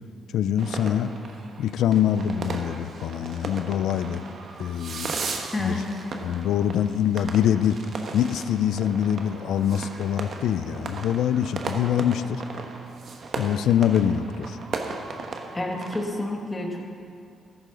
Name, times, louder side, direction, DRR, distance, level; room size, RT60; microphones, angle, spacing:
voice 1, 0.3-1.1 1.6-4.2 4.6-5.2 5.6-5.8 6.2-7.8 8.1-12.4 13.4-14.6, left 9 dB, 80° left, 13 dB, 0.4 m, -24 dB
sound 1, 0.6-16.1, right 4 dB, 55° right, 1.1 m, -36 dB
voice 2, 5.5-6.0 15.5-16.8, left 2 dB, 20° left, 1 dB, 1.7 m, -29 dB
13.5 x 11.0 x 3.9 m, 2.4 s
cardioid pair, 90°, 0 cm